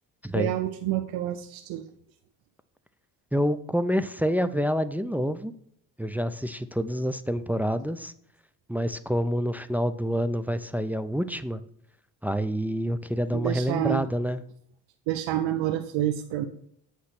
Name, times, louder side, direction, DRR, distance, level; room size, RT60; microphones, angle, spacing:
voice 1, 0.3-1.8 13.3-14.0 15.1-16.5, right 12 dB, 85° right, 8 dB, 0.6 m, -28 dB
voice 2, 3.3-5.5 6.0-8.1 8.7-11.6 12.2-14.4, equal, 5° right, 11 dB, 0.4 m, -27 dB
8.1 x 3.2 x 5.9 m, 0.69 s
supercardioid pair, 60°, 44 cm